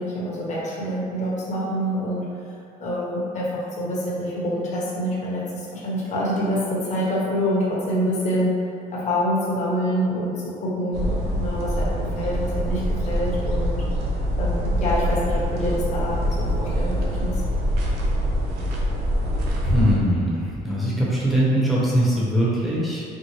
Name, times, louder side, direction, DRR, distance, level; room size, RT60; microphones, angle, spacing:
voice 1, 0.0-2.2 2.8-8.6 8.9-13.8 14.3-17.4, equal, 45° left, -6 dB, 1.1 m, -26 dB
sound 1, 10.9-20.0, equal, 80° right, 0.6 m, -24 dB
voice 2, 19.6-23.0, equal, ahead, -8 dB, 1.0 m, -21 dB
4.5 x 2.1 x 3.1 m, 2.4 s
cardioid pair, 110°, 17 cm